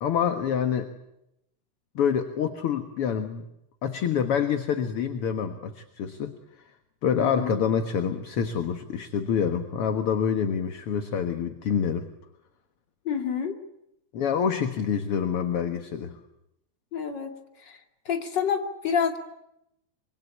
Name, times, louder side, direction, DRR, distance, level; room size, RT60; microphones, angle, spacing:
voice 1, 0.0-0.9 2.0-3.4 3.8-6.3 7.0-12.1 14.1-16.2, left 7 dB, 55° left, 7 dB, 2.1 m, -26 dB
voice 2, 7.2-7.6 13.0-13.6 16.9-17.8 18.0-19.2, left 7 dB, 40° left, 5 dB, 3.0 m, -28 dB
25.5 x 25.0 x 8.5 m, 0.83 s
omnidirectional pair, 3.4 m